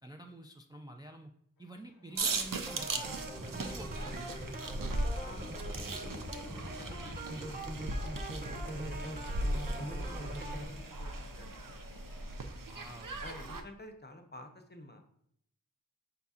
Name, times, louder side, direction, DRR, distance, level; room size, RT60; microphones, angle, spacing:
voice 1, 0.0-1.3 1.6-3.1 3.4-4.2 12.6-13.2, right 1 dB, 15° right, 3 dB, 0.3 m, -48 dB
sound 1, 1.6-12.4, left 3 dB, 85° left, 0.6 m, -59 dB
sound 2, 2.1-13.6, right 2 dB, 75° right, 0.5 m, -38 dB
sound 3, 2.7-10.7, right 1 dB, 30° right, 0.9 m, -42 dB
voice 2, 5.2-12.0 13.2-15.0, left 1 dB, 30° left, 5 dB, 0.7 m, -52 dB
5.5 x 4.0 x 2.4 m, 0.70 s
wide cardioid pair, 45°, 33 cm